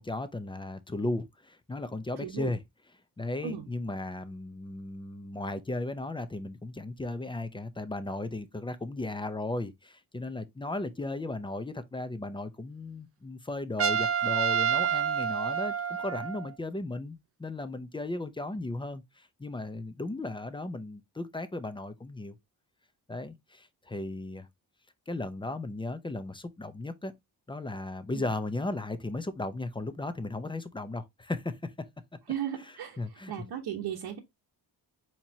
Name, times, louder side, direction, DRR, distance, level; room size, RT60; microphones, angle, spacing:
voice 1, 0.0-2.6 3.2-22.4 23.1-24.5 25.1-27.1 27.5-31.7 33.0-33.5, left 2 dB, 15° left, 0.5 m, -36 dB
voice 2, 2.2-2.5 3.4-3.7 28.1-28.2 32.3-33.0 33.3-34.2, right 9 dB, 80° right, 1.0 m, -35 dB
Trumpet, 13.8-16.5, right 8 dB, 40° right, 0.4 m, -28 dB
4.4 x 4.4 x 2.7 m
cardioid pair, 130°, 39 cm